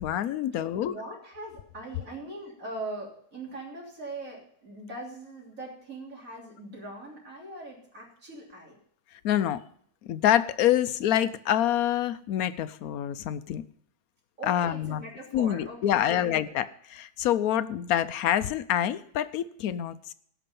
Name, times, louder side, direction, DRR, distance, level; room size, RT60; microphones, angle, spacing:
voice 1, 0.0-0.9 9.2-9.6 10.0-13.6 14.5-15.0 15.3-20.1, left 11 dB, 70° left, 14 dB, 1.0 m, -26 dB
voice 2, 0.5-8.8 14.4-16.5, right 1 dB, 55° right, -2 dB, 3.6 m, -41 dB
18.0 x 6.0 x 5.3 m, 0.65 s
omnidirectional pair, 1.7 m